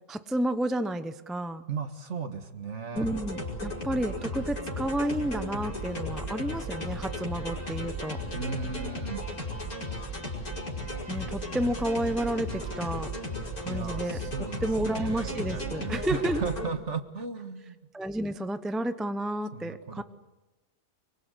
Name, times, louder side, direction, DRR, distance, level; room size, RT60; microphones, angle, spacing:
voice 1, 0.1-1.6 2.9-8.2 11.1-13.1 13.6-14.2 14.6-16.4 17.9-20.0, right 1 dB, ahead, 10 dB, 0.3 m, -31 dB
voice 2, 1.7-3.1 8.3-9.3 13.6-17.8 19.5-20.0, right 5 dB, 45° right, 8 dB, 1.8 m, -36 dB
sound 1, 3.0-16.7, left 1 dB, 55° left, 5.9 m, -35 dB
24.0 x 23.5 x 8.2 m, 1.1 s
omnidirectional pair, 1.8 m